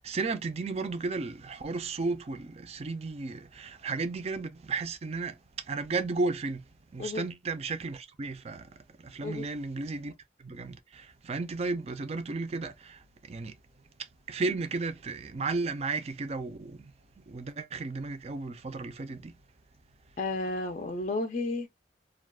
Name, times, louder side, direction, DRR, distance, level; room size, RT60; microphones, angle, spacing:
voice 1, 0.0-6.6 6.9-10.1 10.4-13.5 14.0-19.3, right 3 dB, 35° right, 0.4 m, -34 dB
voice 2, 20.2-21.7, left 2 dB, 40° left, 0.4 m, -32 dB
2.3 x 2.2 x 3.4 m
head